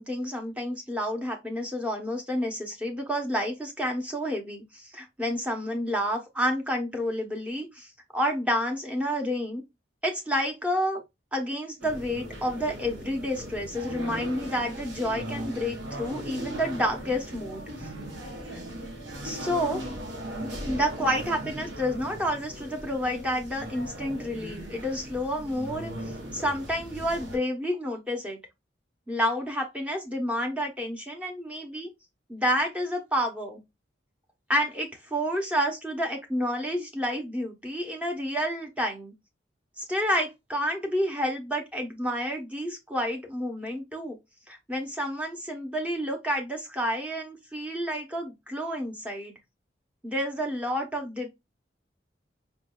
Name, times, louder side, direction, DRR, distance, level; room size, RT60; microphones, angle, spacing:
voice 1, 0.0-9.6 10.0-11.0 11.3-17.9 18.5-18.6 19.2-19.8 20.6-28.4 29.1-31.9 32.3-33.6 34.5-39.1 39.8-44.2 44.5-49.3 50.0-51.3, equal, 5° right, 0.9 m, -29 dB
sound 1, 11.8-27.4, equal, 90° right, 1.5 m, -38 dB
5.3 x 2.6 x 2.2 m
head